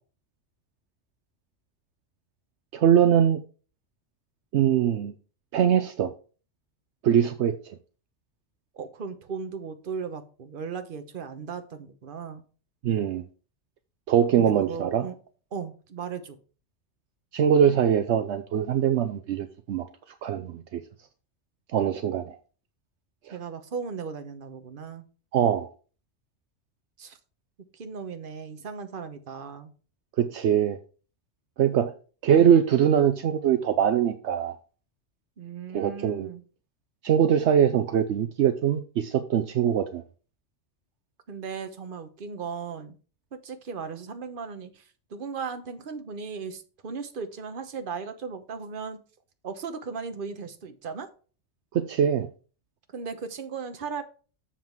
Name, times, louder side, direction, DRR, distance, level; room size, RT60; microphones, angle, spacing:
voice 1, 2.7-3.4 4.5-5.1 5.5-6.1 7.0-7.8 12.8-13.2 14.1-15.1 17.3-19.8 20.2-20.8 21.7-22.4 23.3-23.4 25.3-25.7 30.2-30.8 31.6-31.9 32.2-34.6 35.7-36.3 37.0-40.0 51.7-52.3, right 9 dB, 70° right, 0.9 m, -22 dB
voice 2, 8.7-12.4 14.4-15.1 15.5-16.4 23.3-25.0 27.0-27.2 27.7-29.7 35.4-36.4 41.3-42.9 43.4-44.8 45.1-49.0 49.4-51.1 52.9-54.0, right 5 dB, 50° right, 1.1 m, -36 dB
7.3 x 5.8 x 4.5 m
omnidirectional pair, 1.2 m